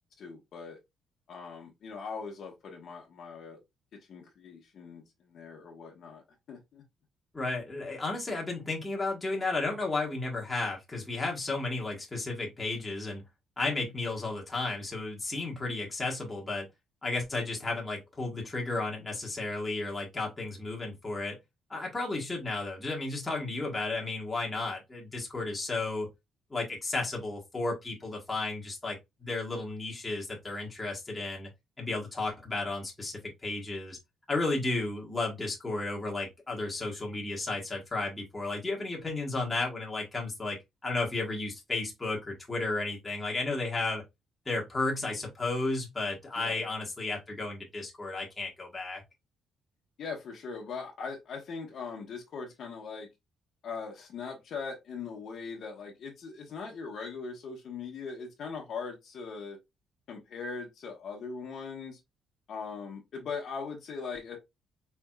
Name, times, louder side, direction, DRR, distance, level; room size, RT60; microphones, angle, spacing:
voice 1, 0.2-0.8 1.3-3.6 3.9-6.2 6.5-6.8 46.4-46.6 50.0-53.1 53.6-59.6 60.1-62.0 62.5-64.4, left 5 dB, 55° left, 1.1 m, -40 dB
voice 2, 7.3-13.2 13.6-16.7 17.0-21.4 21.7-26.1 26.5-31.5 31.8-34.0 34.3-44.0 44.4-49.0, left 3 dB, 15° left, 1.3 m, -33 dB
4.4 x 3.4 x 2.3 m
cardioid pair, 155°, 0 cm